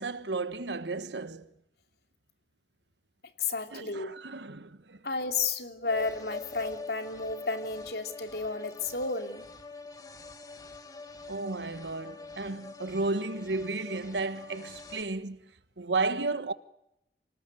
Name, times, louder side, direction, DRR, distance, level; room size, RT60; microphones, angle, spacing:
voice 1, 0.0-1.5 3.7-5.0 11.3-16.5, right 3 dB, 85° right, 1.4 m, -33 dB
voice 2, 3.4-4.1 5.0-9.5, left 4 dB, 65° left, 2.7 m, -32 dB
sound 1, 5.8-15.0, left 3 dB, 20° left, 2.0 m, -45 dB
26.5 x 19.5 x 9.6 m
head